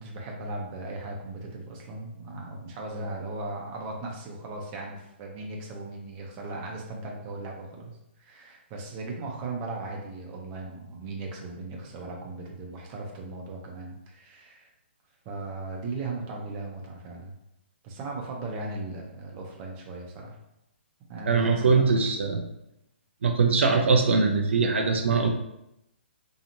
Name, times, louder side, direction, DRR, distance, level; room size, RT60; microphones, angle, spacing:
voice 1, 0.0-7.9 8.2-14.7 15.2-17.3 17.8-20.4 21.1-21.8, right 2 dB, 30° right, 0 dB, 0.6 m, -37 dB
voice 2, 21.3-22.4 23.2-25.3, right 4 dB, 75° right, 3 dB, 0.4 m, -22 dB
2.8 x 2.4 x 2.6 m, 0.83 s
hypercardioid pair, 140°, 7 cm